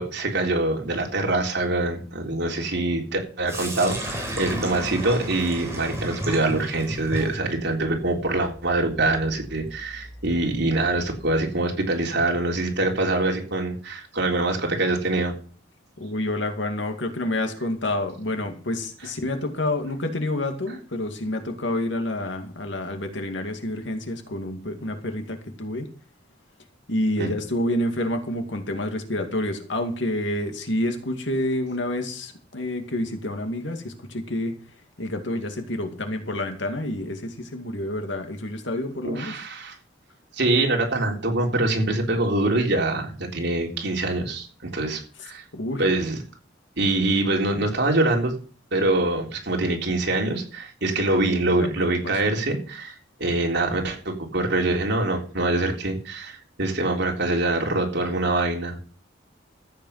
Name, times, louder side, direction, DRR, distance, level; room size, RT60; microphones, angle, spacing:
voice 1, 0.0-15.3 27.2-27.3 39.0-39.8 40.4-45.4 45.8-46.2 46.8-48.3 48.7-52.9 53.2-58.8, right 2 dB, 65° right, 1 dB, 3.7 m, -24 dB
Sink (filling or washing), 3.5-11.4, equal, 15° right, 4.7 m, -34 dB
voice 2, 16.0-25.9 26.9-34.6 35.0-39.4 45.5-45.9 51.0-52.4, left 1 dB, 70° left, 5 dB, 2.3 m, -28 dB
14.0 x 8.6 x 5.8 m, 0.41 s
head